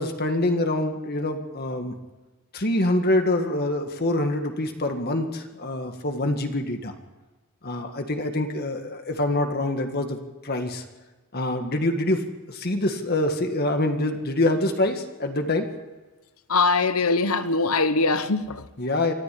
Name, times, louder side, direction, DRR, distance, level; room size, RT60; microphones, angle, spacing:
voice 1, 0.0-1.9 2.5-6.9 7.6-10.8 11.3-15.7 18.8-19.1, left 1 dB, 45° left, 1.8 m, -25 dB
voice 2, 16.5-18.6, left 3 dB, 85° left, 1.2 m, -22 dB
25.0 x 14.5 x 8.5 m
head